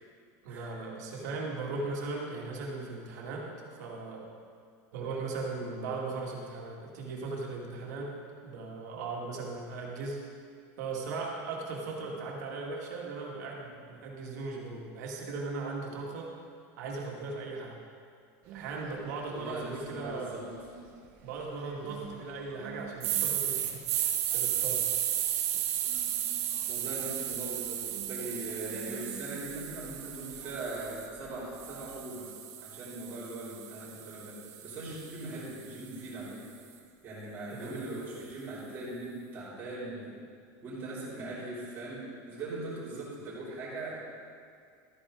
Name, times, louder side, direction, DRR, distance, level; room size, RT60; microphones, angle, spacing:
voice 1, 0.4-3.5 3.8-4.3 4.9-8.1 8.4-10.2 10.8-16.3 16.8-17.8 18.5-20.5 21.2-24.8 37.5-37.8, right 3 dB, 85° right, -2 dB, 2.2 m, -38 dB
sound 1, 18.4-31.8, right 4 dB, 40° right, 1.2 m, -50 dB
voice 2, 19.3-20.4 26.7-34.4 34.6-36.4 37.0-40.1 40.6-44.0, right 2 dB, 25° right, -9 dB, 3.3 m, -40 dB
sound 2, 23.0-31.1 31.6-35.8, right 11 dB, 65° right, 1.1 m, -34 dB
13.0 x 9.7 x 3.9 m, 2.2 s
supercardioid pair, 180°, 9 cm